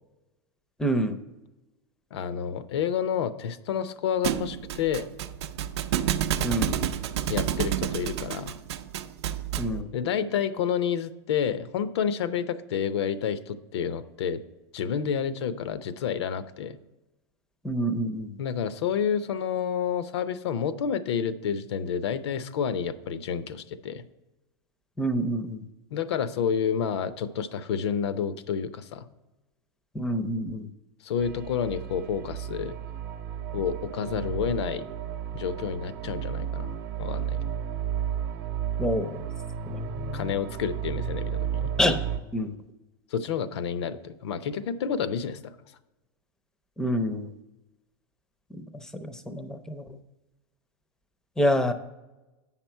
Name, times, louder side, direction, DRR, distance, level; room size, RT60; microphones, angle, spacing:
voice 1, 0.8-1.2 6.4-6.8 9.6-9.9 17.6-18.4 25.0-25.6 29.9-30.7 38.8-39.2 39.7-40.3 41.8-42.0 42.3-42.6 46.8-47.3 48.5-50.0 51.4-51.7, equal, 5° left, 9 dB, 0.5 m, -27 dB
voice 2, 2.1-5.1 7.3-8.5 9.9-14.4 14.7-16.8 18.4-24.0 25.9-29.0 31.0-32.8 33.5-34.8 35.3-37.4 40.1-41.7 43.1-45.5, left 7 dB, 85° left, 13 dB, 0.7 m, -29 dB
Thump thud, 4.2-9.8, right 10 dB, 90° right, 0.5 m, -29 dB
sound 1, 31.2-42.2, right 8 dB, 50° right, 0.8 m, -33 dB
8.4 x 5.8 x 4.5 m, 1.0 s
supercardioid pair, 155°, 14 cm